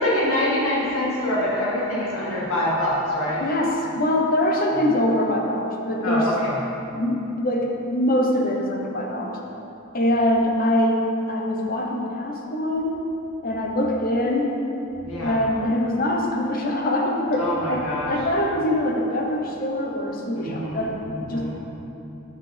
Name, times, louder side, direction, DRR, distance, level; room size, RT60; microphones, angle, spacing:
voice 1, 0.0-3.4 6.0-6.6 15.0-15.4 17.4-18.1 20.3-20.9 21.1-21.6, left 1 dB, 75° left, -6 dB, 1.8 m, -25 dB
voice 2, 3.4-6.3 6.9-9.4 9.9-13.0 13.4-14.6 15.2-21.6, left 1 dB, 40° left, 0 dB, 0.8 m, -23 dB
7.5 x 7.4 x 3.4 m, 2.8 s
head